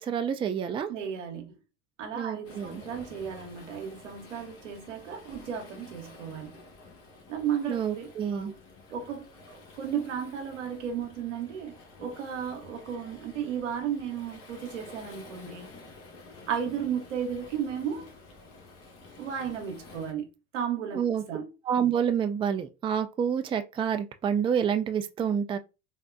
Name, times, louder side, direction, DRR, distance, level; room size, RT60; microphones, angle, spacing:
voice 1, 0.0-0.9 2.2-2.8 7.7-8.5 20.9-21.2 21.7-25.6, right 8 dB, 15° right, 0.3 m, -28 dB
voice 2, 0.9-1.6 2.0-6.6 7.3-8.6 8.9-15.7 16.5-18.1 19.2-21.5, right 8 dB, 90° right, 0.8 m, -34 dB
Waves surf, 2.4-20.1, left 3 dB, 40° left, 1.1 m, -50 dB
3.6 x 2.1 x 2.5 m
hypercardioid pair, 80°, 36 cm